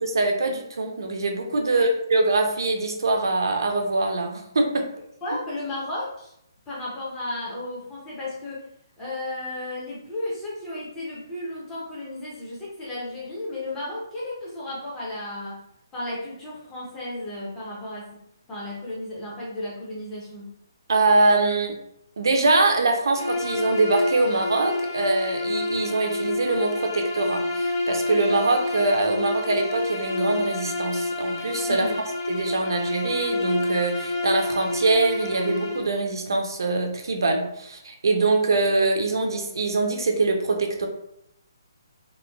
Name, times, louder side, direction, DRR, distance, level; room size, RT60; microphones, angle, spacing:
voice 1, 0.0-4.9 20.9-21.8 22.2-40.9, right 3 dB, 70° right, 3 dB, 0.5 m, -23 dB
voice 2, 5.2-6.3 6.7-8.6 9.0-15.6 15.9-18.1 18.5-20.5 31.6-32.0, left 1 dB, 10° left, -7 dB, 0.5 m, -34 dB
Bowed string instrument, 23.1-35.9, left 2 dB, 60° left, 0.7 m, -28 dB
3.0 x 2.1 x 2.2 m, 0.75 s
hypercardioid pair, 180°, 2 cm